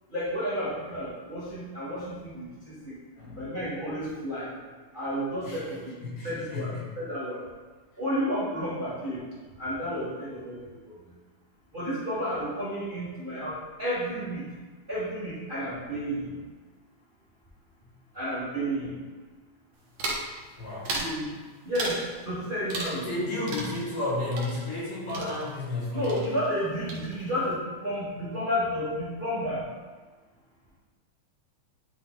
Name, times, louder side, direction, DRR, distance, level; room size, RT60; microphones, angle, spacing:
voice 1, 0.1-3.0 3.3-4.5 4.9-5.9 6.2-7.4 8.0-9.2 9.6-10.6 10.9-11.0 11.7-14.5 14.9-16.3 18.1-18.9 21.0-21.3 21.6-23.0 25.2-25.3 25.9-29.6, equal, 35° right, -10 dB, 0.8 m, -31 dB
voice 2, 3.2-3.6 4.9-5.1 5.4-6.9 20.5-21.0 22.7-26.3, left 2 dB, 80° left, -9 dB, 4.0 m, -33 dB
sound 1, 20.0-20.3 20.9-21.2 21.8-22.1 22.7-23.2 23.5-25.8 26.0-26.6 26.9-27.4, right 2 dB, 75° right, 1.1 m, -35 dB
10.5 x 3.8 x 3.8 m, 1.4 s
omnidirectional pair, 3.7 m